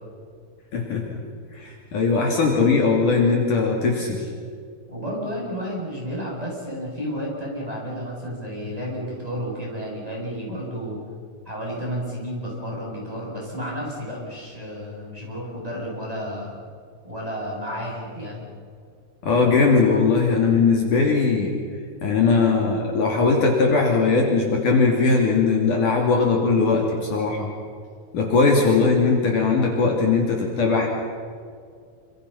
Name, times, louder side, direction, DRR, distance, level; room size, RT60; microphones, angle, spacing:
voice 1, 0.7-1.2 1.5-4.3 19.2-21.5 22.0-27.5 28.1-30.9, left 4 dB, 55° left, 0 dB, 4.2 m, -20 dB
voice 2, 4.9-11.0 11.4-16.5 17.0-18.4, equal, 10° right, -4 dB, 7.9 m, -31 dB
27.5 x 27.0 x 5.8 m, 2.2 s
omnidirectional pair, 4.5 m